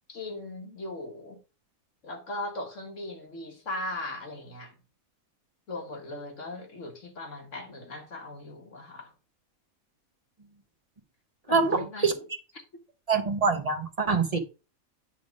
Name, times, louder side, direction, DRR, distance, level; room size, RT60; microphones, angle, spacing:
voice 1, 0.1-1.4 2.0-4.7 5.7-9.1 11.5-12.2, left 2 dB, 60° left, 1.8 m, -38 dB
voice 2, 11.5-12.1 13.1-14.4, right 4 dB, 30° right, 1.0 m, -25 dB
9.5 x 3.4 x 5.2 m
omnidirectional pair, 1.5 m